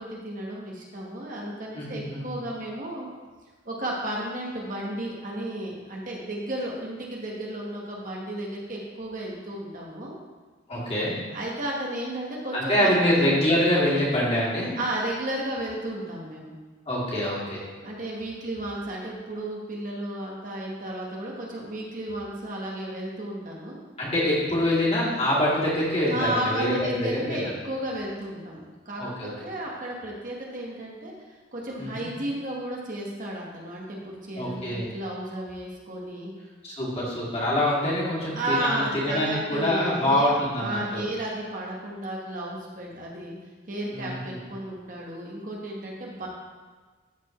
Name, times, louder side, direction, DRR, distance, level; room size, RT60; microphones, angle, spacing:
voice 1, 0.0-3.1 3.6-10.2 11.3-12.9 13.2-13.4 14.8-16.5 17.8-23.8 26.1-31.1 31.5-36.3 38.3-43.4 43.7-46.3, right 1 dB, 45° right, -2 dB, 1.2 m, -33 dB
voice 2, 1.7-2.2 10.7-11.1 12.5-14.7 16.9-17.6 24.0-27.5 29.0-29.3 31.8-32.1 34.4-34.9 36.6-41.0 43.9-44.4, left 1 dB, 35° left, -8 dB, 2.4 m, -25 dB
12.5 x 4.4 x 3.1 m, 1.3 s
head